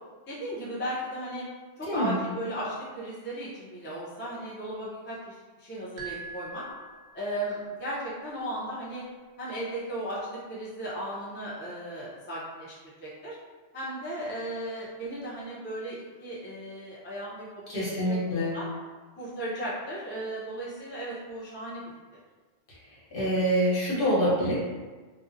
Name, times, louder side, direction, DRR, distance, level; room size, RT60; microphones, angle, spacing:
voice 1, 0.3-1.4 1.8-6.6 7.1-9.0 9.4-10.2 10.5-13.4 13.7-18.7 19.2-21.8, right 1 dB, 15° left, -8 dB, 0.4 m, -36 dB
voice 2, 1.9-2.2 17.7-18.5 23.1-24.5, equal, 60° left, -8 dB, 1.0 m, -25 dB
sound 1, 6.0-7.5, right 4 dB, 65° right, 0.7 m, -42 dB
2.6 x 2.0 x 2.5 m, 1.3 s
omnidirectional pair, 1.1 m